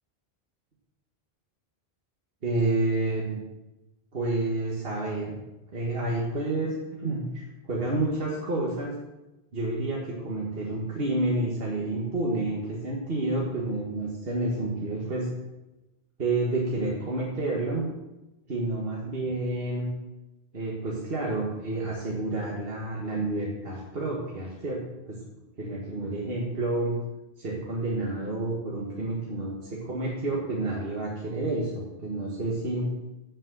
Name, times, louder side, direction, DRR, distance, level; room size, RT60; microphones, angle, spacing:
voice 1, 2.4-3.4 4.1-5.4 5.7-8.9 9.5-15.3 16.2-17.8 18.5-19.9 20.5-25.2 25.6-26.9 27.4-32.9, right 2 dB, 65° right, -4 dB, 1.8 m, -29 dB
7.8 x 7.4 x 7.7 m, 1.0 s
omnidirectional pair, 1.1 m